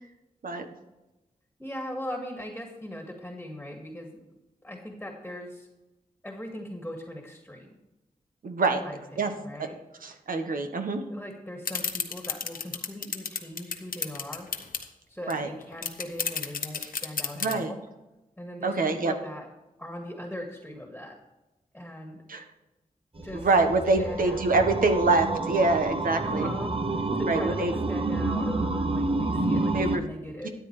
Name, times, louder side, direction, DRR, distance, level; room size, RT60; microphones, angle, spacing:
voice 1, 1.6-4.2 4.6-5.7 6.2-7.8 8.7-9.8 11.1-14.5 15.1-17.8 18.4-19.5 19.8-21.2 21.7-22.2 23.2-23.5 24.0-24.7 26.2-26.8 27.1-30.5, left 1 dB, 5° left, 2 dB, 1.9 m, -39 dB
voice 2, 8.4-8.8 9.2-9.3 9.6-9.7 10.0-11.0 15.3-15.5 16.8-16.9 17.4-17.7 18.6-19.1 22.3-22.4 23.3-26.5 27.3-27.7 29.7-30.0 30.4-30.5, right 3 dB, 75° right, 6 dB, 1.2 m, -25 dB
sound 1, 11.6-14.8 15.3-15.4 15.6-17.5, left 6 dB, 85° left, 1.0 m, -31 dB
sound 2, 23.2-30.0, right 2 dB, 40° right, 0.8 m, -29 dB
13.0 x 9.3 x 3.3 m, 1.0 s
wide cardioid pair, 85°, 14 cm